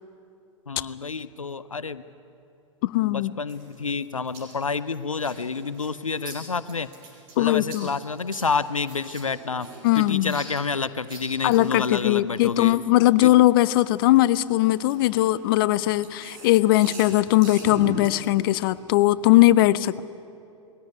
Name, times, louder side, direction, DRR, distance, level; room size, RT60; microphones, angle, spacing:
voice 1, 0.7-2.0 3.0-6.9 7.4-9.7 10.0-12.8 13.2-13.3, left 4 dB, 85° left, 15 dB, 0.6 m, -29 dB
voice 2, 2.8-3.3 7.4-7.9 9.8-10.4 11.4-20.0, left 16 dB, 45° left, 18 dB, 0.6 m, -20 dB
sound 1, 3.5-13.3 13.8-18.8, right 3 dB, 45° right, 5.4 m, -42 dB
21.0 x 16.5 x 9.6 m, 2.7 s
figure-of-eight pair, 100°, 17 cm